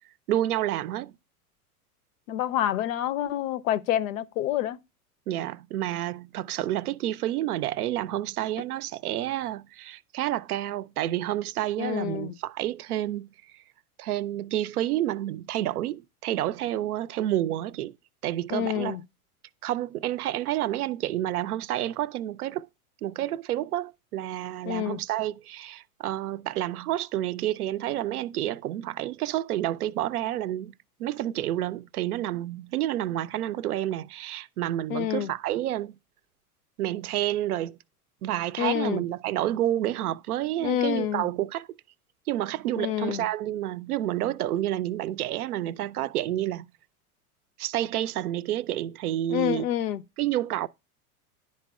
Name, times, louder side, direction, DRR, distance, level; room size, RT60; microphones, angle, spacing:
voice 1, 0.3-1.1 5.3-13.3 14.0-18.0 18.2-19.0 19.6-22.7 23.0-30.7 31.0-36.0 36.8-37.8 38.2-41.7 42.3-46.7 47.6-49.7 50.2-50.7, right 13 dB, 80° right, 0.5 m, -29 dB
voice 2, 2.3-4.8 11.8-12.3 18.5-19.0 24.7-25.0 34.9-35.3 38.6-39.0 40.6-41.3 42.8-43.3 49.3-50.0, left 11 dB, 65° left, 0.6 m, -28 dB
10.5 x 4.2 x 2.3 m
hypercardioid pair, 95°, 45 cm